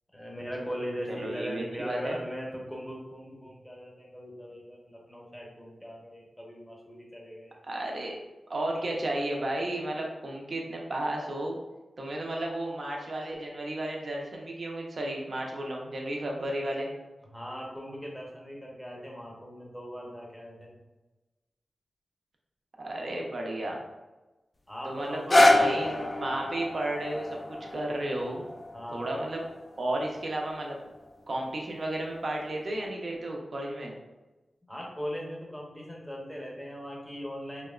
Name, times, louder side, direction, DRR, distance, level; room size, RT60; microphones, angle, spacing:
voice 1, 0.1-7.6 8.6-8.7 17.3-20.8 23.1-23.3 24.7-26.4 28.7-29.1 34.7-37.7, equal, 5° left, -2 dB, 0.7 m, -39 dB
voice 2, 1.1-2.2 7.6-8.2 8.5-11.6 12.0-16.9 22.8-23.8 24.8-25.9 26.2-28.4 28.9-29.5 29.8-30.8 31.3-33.9, right 1 dB, 60° right, 0 dB, 0.5 m, -33 dB
sound 1, 25.0-31.1 31.8-31.9, left 1 dB, 35° left, 0.3 m, -27 dB
2.8 x 2.1 x 2.3 m, 1.1 s
cardioid pair, 60°, 0 cm